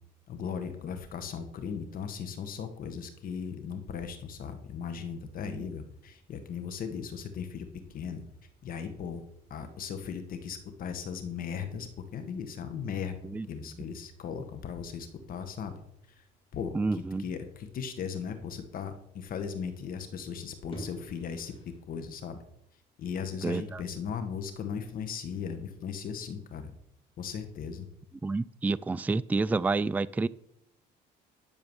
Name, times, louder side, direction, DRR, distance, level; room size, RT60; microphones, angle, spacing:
voice 1, 0.3-7.7 7.9-8.2 8.6-9.2 9.5-13.1 13.5-15.8 16.2-16.3 16.5-21.5 21.9-22.4 23.0-26.7 27.2-27.9, left 7 dB, 55° left, 1.5 m, -37 dB
sound 1, 5.8-21.8, left 1 dB, 30° left, 5.4 m, -55 dB
voice 2, 16.7-17.2 23.4-23.8 28.2-30.3, right 3 dB, 10° right, 0.3 m, -29 dB
11.0 x 7.1 x 7.2 m
cardioid pair, 110°, 17 cm